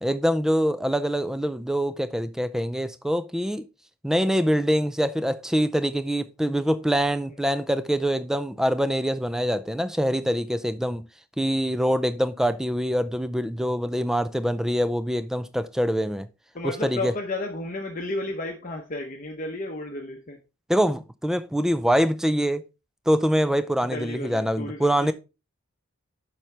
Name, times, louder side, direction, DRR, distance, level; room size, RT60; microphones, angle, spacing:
voice 1, 0.0-3.6 4.0-11.1 11.4-16.3 16.6-17.1 20.7-22.6 23.1-25.1, equal, ahead, 0.4 m, -24 dB
voice 2, 16.5-20.4 23.8-25.1, left 2 dB, 35° left, 0.9 m, -32 dB
7.3 x 5.9 x 3.3 m
head